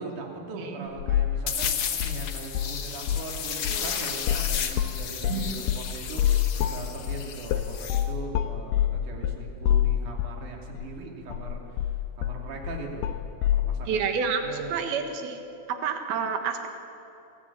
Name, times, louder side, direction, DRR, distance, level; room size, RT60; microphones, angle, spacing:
voice 1, 0.0-13.1 13.4-14.8, right 3 dB, 55° right, 0 dB, 4.0 m, -40 dB
voice 2, 0.5-0.9 5.3-5.6 13.9-15.4 15.7-16.7, right 6 dB, 75° right, 5 dB, 3.5 m, -29 dB
sound 1, 1.0-1.4 1.6-2.8 3.0-3.3 3.7-10.4 10.8-10.9 11.3-13.7, left 11 dB, 85° left, 3.0 m, -26 dB
sound 2, 1.5-8.0, left 7 dB, 70° left, 1.2 m, -33 dB
26.0 x 17.0 x 8.5 m, 2.7 s
omnidirectional pair, 4.5 m